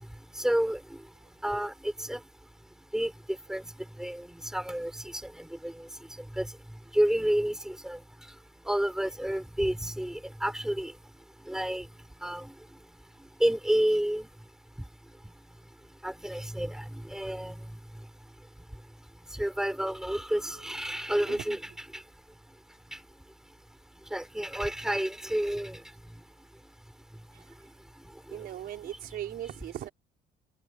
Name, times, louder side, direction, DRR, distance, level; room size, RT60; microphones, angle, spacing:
voice 1, 0.4-1.0 1.4-2.2 2.9-3.1 3.5-3.6 4.0-4.3 4.5-5.9 6.3-6.5 6.9-8.0 8.7-10.9 11.5-11.9 12.2-12.5 13.4-14.3 16.0-17.5 19.3-22.0 24.1-25.8, right 1 dB, 5° right, 4.1 m, -30 dB
voice 2, 21.3-21.8 27.3-27.8 28.3-29.9, right 12 dB, 65° right, 5.1 m, -40 dB
cardioid pair, 110°, 17 cm